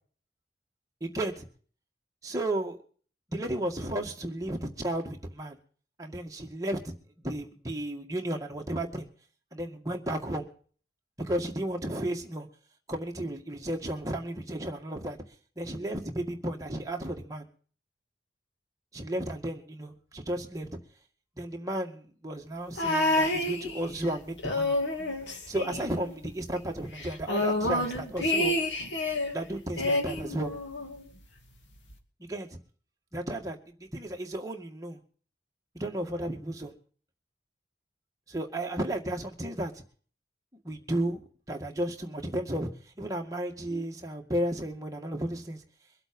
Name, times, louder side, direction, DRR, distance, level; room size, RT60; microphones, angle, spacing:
voice 1, 1.0-1.5 2.2-2.8 3.3-5.6 6.0-6.9 7.2-9.1 9.5-10.5 11.2-12.5 12.9-15.2 15.6-17.4 18.9-20.7 21.4-24.8 25.5-28.6 29.3-30.5 32.2-32.5 33.1-35.0 35.7-36.8 38.3-39.7 40.6-41.2 41.5-42.7 43.0-45.6, right 1 dB, 20° right, 1 dB, 2.0 m, -33 dB
sound 1, 22.8-24.1 24.4-26.3 26.6-26.7 27.0-29.3 29.8-31.0 31.9-32.0, left 1 dB, 85° left, 2.4 m, -29 dB
23.5 x 8.0 x 5.4 m, 0.43 s
head